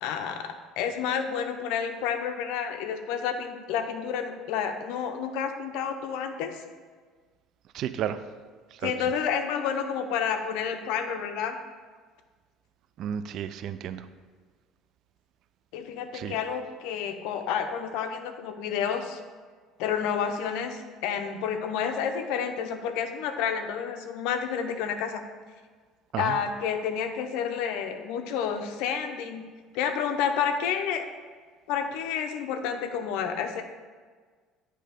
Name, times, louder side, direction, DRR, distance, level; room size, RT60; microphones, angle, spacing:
voice 1, 0.0-6.6 8.8-11.6 15.7-19.2 19.8-25.2 26.2-29.4 29.7-31.0 31.7-33.6, left 7 dB, 80° left, 7 dB, 0.7 m, -30 dB
voice 2, 7.7-8.2 8.7-8.9 13.0-14.1 16.1-16.4 26.1-26.4, right 9 dB, 60° right, 12 dB, 0.4 m, -32 dB
9.2 x 3.3 x 5.1 m, 1.5 s
cardioid pair, 115°, 0 cm